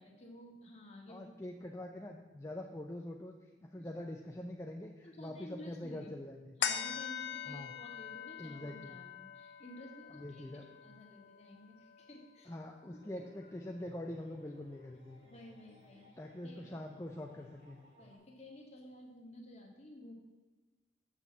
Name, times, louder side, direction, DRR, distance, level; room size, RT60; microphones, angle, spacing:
voice 1, 0.0-1.3 3.7-3.9 5.0-6.1 6.6-12.5 13.2-13.3 15.2-16.2 16.4-16.8 18.0-20.1, left 1 dB, 35° left, 0 dB, 1.8 m, -53 dB
voice 2, 1.1-6.6 7.5-7.7 8.4-9.0 10.2-10.6 12.5-15.2 16.2-17.8, left 1 dB, 15° left, 1 dB, 0.5 m, -44 dB
sound 1, 6.6-13.4 13.8-13.9, left 8 dB, 90° left, 0.7 m, -43 dB
sound 2, 13.0-18.2, left 1 dB, 40° right, 3.2 m, -62 dB
7.2 x 6.7 x 7.3 m, 1.3 s
head